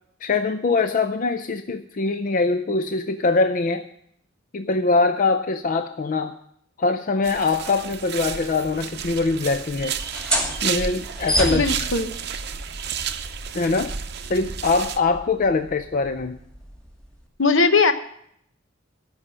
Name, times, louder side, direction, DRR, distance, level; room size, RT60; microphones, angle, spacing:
voice 1, 0.2-3.9 4.5-6.4 6.8-10.0 10.6-11.9 13.5-13.9 14.3-16.4, left 3 dB, 40° left, 8 dB, 0.5 m, -23 dB
sound 1, 7.2-15.0, right 7 dB, 55° right, 0.7 m, -32 dB
sound 2, 10.0-17.3, equal, 5° left, 2.3 m, -31 dB
voice 2, 11.5-12.1 17.4-17.9, left 4 dB, 70° left, 9 dB, 1.0 m, -19 dB
13.5 x 5.5 x 8.8 m, 0.70 s
head